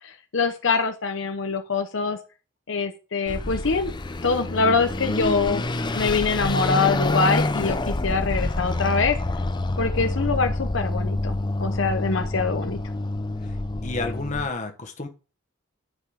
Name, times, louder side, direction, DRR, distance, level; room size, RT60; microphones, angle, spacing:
voice 1, 0.0-2.2 2.7-3.9 4.2-5.6 5.9-9.2 9.8-12.8, left 4 dB, 65° left, 0.9 m, -24 dB
Car passing by / Accelerating revving vroom, 3.3-14.5, left 2 dB, 20° left, 0.6 m, -27 dB
voice 2, 13.8-15.1, left 3 dB, 40° left, 1.4 m, -30 dB
10.0 x 5.3 x 5.0 m
head